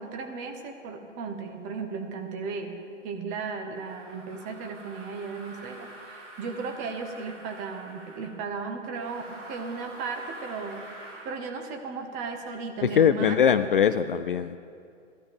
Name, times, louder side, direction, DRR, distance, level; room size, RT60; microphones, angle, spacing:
voice 1, 0.0-2.7 3.0-10.8 11.2-13.5, right 5 dB, 20° right, 5 dB, 1.1 m, -35 dB
sound 1, 3.7-8.4 8.9-11.4, right 1 dB, 75° right, 4.3 m, -46 dB
voice 2, 12.8-14.6, left 8 dB, 45° left, 11 dB, 0.4 m, -22 dB
14.0 x 12.0 x 5.3 m, 2.3 s
figure-of-eight pair, 130°, 38 cm